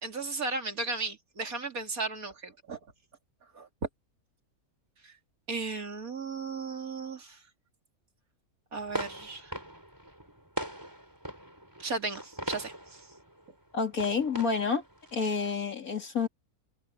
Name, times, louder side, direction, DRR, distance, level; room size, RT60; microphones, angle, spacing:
voice 1, 0.0-2.8 3.5-3.7 5.0-5.1 5.5-7.4 8.7-9.5 11.8-13.0, right 3 dB, 70° right, 3.3 m, -35 dB
sound 1, 8.7-15.5, equal, 15° right, 5.5 m, -41 dB
voice 2, 13.7-14.8 15.1-16.3, left 5 dB, 70° left, 3.1 m, -29 dB
omnidirectional pair, 1.6 m